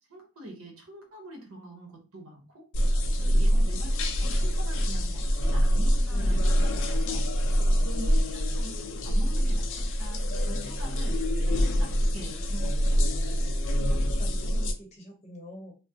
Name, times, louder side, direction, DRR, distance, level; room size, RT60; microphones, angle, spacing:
voice 1, 0.1-2.7 3.1-7.3 7.8-8.8 9.0-13.0, right 1 dB, 70° right, 3 dB, 0.8 m, -44 dB
sound 1, 2.7-14.7, equal, 65° left, 0.5 m, -25 dB
voice 2, 7.6-8.0 13.3-15.8, equal, 35° left, 0 dB, 0.9 m, -47 dB
3.6 x 2.0 x 2.6 m, 0.33 s
head